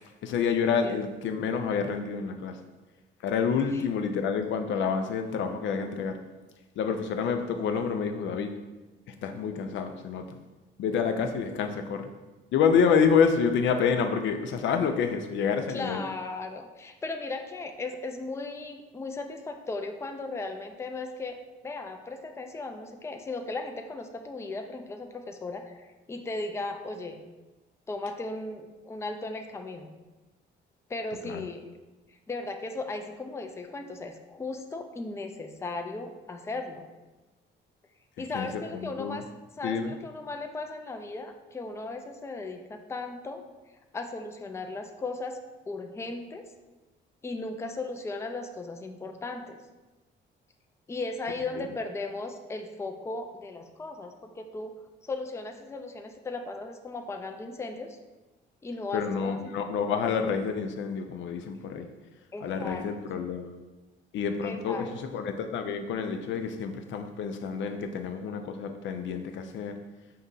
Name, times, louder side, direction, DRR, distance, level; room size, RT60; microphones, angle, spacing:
voice 1, 0.2-2.6 3.2-6.2 6.8-8.5 9.1-10.4 10.8-12.1 12.5-16.0 31.2-31.5 38.3-39.2 39.6-39.9 51.6-51.7 58.9-61.9 62.4-63.6 64.1-69.7, left 6 dB, 75° left, 6 dB, 0.5 m, -28 dB
voice 2, 15.7-21.4 21.6-27.2 27.9-29.9 30.9-31.7 32.1-36.9 38.2-39.3 39.6-43.4 43.9-45.4 45.7-46.5 47.2-49.6 50.9-54.7 55.0-58.0 58.6-59.5 62.3-62.8 64.4-64.9, left 3 dB, 15° left, 5 dB, 0.4 m, -36 dB
4.6 x 2.7 x 3.7 m, 1.1 s
cardioid pair, 90°, 20 cm